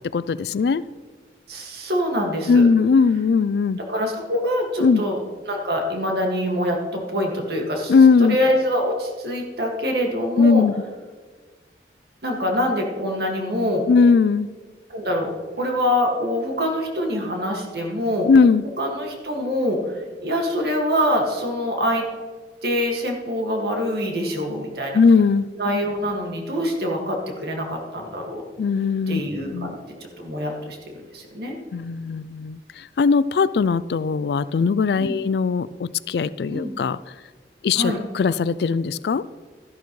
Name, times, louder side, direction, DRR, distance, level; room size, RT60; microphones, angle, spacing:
voice 1, 0.1-0.8 2.5-3.8 4.8-5.0 7.9-8.4 10.4-10.7 13.9-14.5 18.3-18.6 24.9-25.5 28.6-29.2 29.5-29.7 31.7-32.6 33.0-37.0 37.6-39.2, left 5 dB, 70° left, 17 dB, 0.3 m, -18 dB
voice 2, 1.5-2.7 3.9-10.6 12.2-13.9 14.9-18.3 18.8-22.1 22.6-25.0 25.6-28.4 29.1-31.6 35.0-35.2 36.5-36.7 37.8-38.0, equal, 65° right, 1 dB, 2.0 m, -25 dB
13.0 x 11.0 x 3.2 m, 1.4 s
head